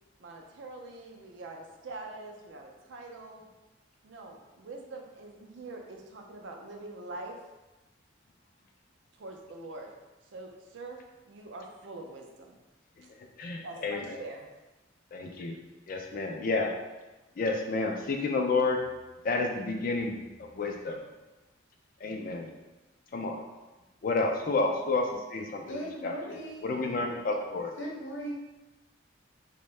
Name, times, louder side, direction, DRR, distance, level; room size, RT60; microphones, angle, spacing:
voice 1, 0.2-3.4 4.0-7.4 9.2-9.9 10.3-11.0 11.2-12.6 13.6-14.5, right 2 dB, 70° right, 2 dB, 0.4 m, -44 dB
voice 2, 13.4-14.2 15.1-15.6 15.9-16.7 17.4-18.8 19.2-21.0 22.0-22.5 23.1-23.4 24.0-25.6 26.0-26.4 26.6-27.7, left 3 dB, 45° left, 3 dB, 0.3 m, -30 dB
voice 3, 25.7-26.7 27.8-28.3, equal, 80° left, -3 dB, 0.7 m, -38 dB
2.7 x 2.1 x 3.1 m, 1.1 s
head